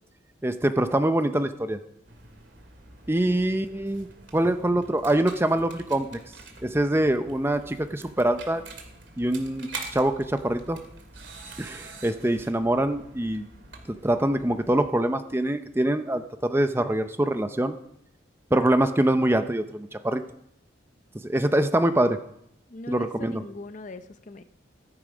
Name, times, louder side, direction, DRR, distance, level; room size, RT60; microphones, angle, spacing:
voice 1, 0.4-1.8 3.1-4.1 4.3-6.2 6.6-8.6 9.2-10.8 11.6-13.4 14.0-17.8 18.5-20.2 21.2-22.2 22.9-23.4, right 1 dB, 10° right, 9 dB, 0.6 m, -24 dB
sound 1, 2.1-14.9, right 3 dB, 75° right, 2.4 m, -45 dB
voice 2, 22.7-24.4, left 2 dB, 40° left, 10 dB, 0.7 m, -40 dB
14.5 x 12.5 x 5.0 m, 0.78 s
head